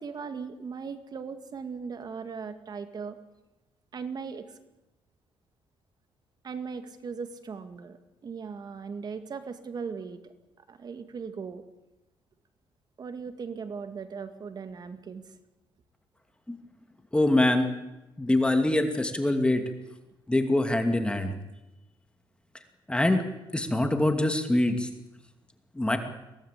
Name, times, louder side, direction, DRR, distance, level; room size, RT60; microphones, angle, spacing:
voice 1, 0.0-3.2 3.9-4.6 6.4-11.6 13.0-15.3, right 5 dB, 50° right, 9 dB, 2.2 m, -38 dB
voice 2, 17.1-17.7 18.2-19.6 20.3-21.3 22.9-23.2 23.5-24.9 25.7-26.0, left 1 dB, 10° left, 6 dB, 2.5 m, -24 dB
23.5 x 17.5 x 8.4 m, 0.98 s
cardioid pair, 95°, 9 cm